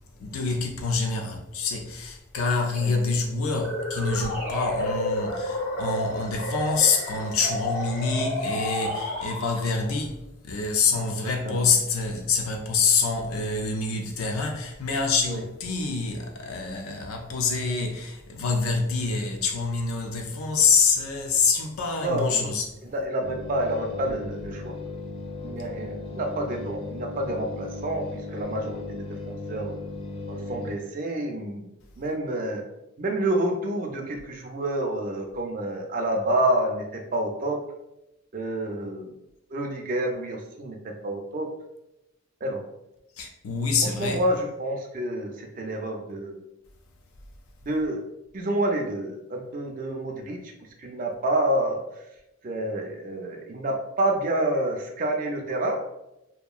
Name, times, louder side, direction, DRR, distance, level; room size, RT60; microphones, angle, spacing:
voice 1, 0.2-10.2 10.4-22.7 43.2-44.2, left 4 dB, 85° left, 0.4 m, -26 dB
sound 1, 3.5-10.0, left 1 dB, 65° left, 1.4 m, -31 dB
voice 2, 11.4-11.8 15.3-15.4 22.0-22.5 22.9-24.7 25.4-29.7 30.3-32.6 33.0-37.6 38.3-39.2 39.5-41.5 42.4-42.6 44.0-46.4 47.6-48.0 48.3-50.4 50.8-51.8 52.4-55.8, right 1 dB, 40° right, 0.4 m, -28 dB
sound 2, 23.2-30.8, left 3 dB, 30° left, 0.4 m, -36 dB
2.8 x 2.5 x 2.3 m
head